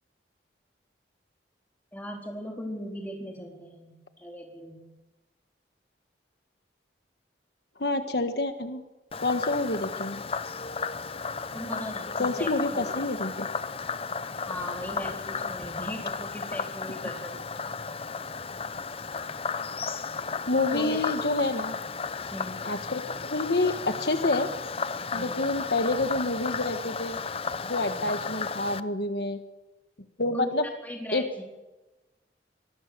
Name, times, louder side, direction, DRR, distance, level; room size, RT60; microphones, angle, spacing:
voice 1, 1.9-4.8 11.5-13.0 14.5-17.4 20.7-21.1 22.3-22.6 25.1-25.5 27.9-28.3 30.3-30.5 30.8-31.4, equal, 10° left, 1 dB, 4.0 m, -38 dB
voice 2, 7.8-8.8 9.2-10.2 12.2-13.5 20.5-21.8 22.6-24.5 25.1-27.2 27.6-29.4 30.2-30.7 31.1-31.4, left 2 dB, 65° left, 8 dB, 1.4 m, -28 dB
Frog, 9.1-28.8, left 5 dB, 30° left, 0.7 m, -34 dB
24.5 x 19.5 x 6.8 m, 1.1 s
head